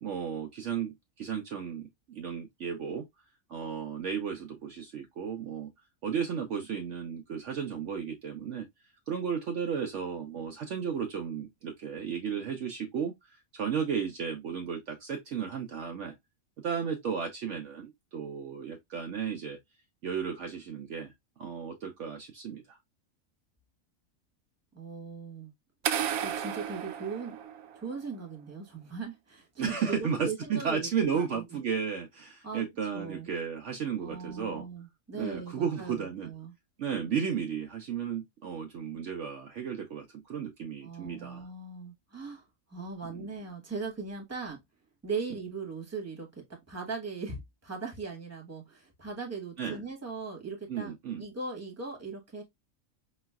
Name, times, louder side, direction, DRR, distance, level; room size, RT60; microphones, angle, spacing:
voice 1, 0.0-3.0 3.5-5.7 6.0-8.7 9.1-16.1 16.6-19.6 20.0-21.1 21.4-22.8 29.6-34.7 35.1-36.3 36.8-41.4 43.1-43.3 49.6-49.8 50.7-51.2, right 7 dB, 65° right, 0.9 m, -34 dB
voice 2, 24.7-25.5 26.2-27.4 27.8-31.6 32.4-32.6 32.9-33.3 34.0-36.5 40.8-42.4 42.7-44.6 45.0-52.4, right 4 dB, 10° right, 1.1 m, -39 dB
sound 1, 25.8-27.9, right 9 dB, 90° right, 1.0 m, -33 dB
4.9 x 3.1 x 2.2 m
omnidirectional pair, 1.5 m